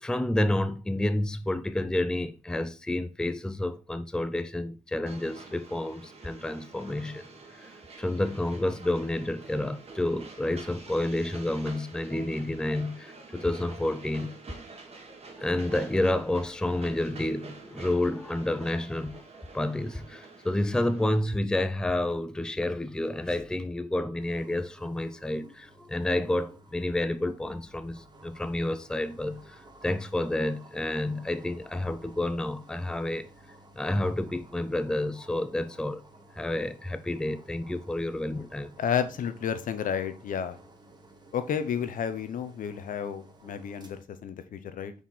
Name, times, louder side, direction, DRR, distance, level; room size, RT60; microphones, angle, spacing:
voice 1, 0.0-7.3 7.5-14.3 15.3-19.2 19.5-33.3 33.8-36.0 36.4-38.7, left 1 dB, 5° left, 0.5 m, -30 dB
Train, 5.1-21.2, right 3 dB, 45° right, 1.9 m, -47 dB
sound 1, 24.2-44.0, right 1 dB, 30° right, 1.5 m, -55 dB
voice 2, 38.8-40.6 41.3-44.9, left 8 dB, 65° left, 0.9 m, -31 dB
5.7 x 4.8 x 4.2 m
cardioid pair, 75°, 15 cm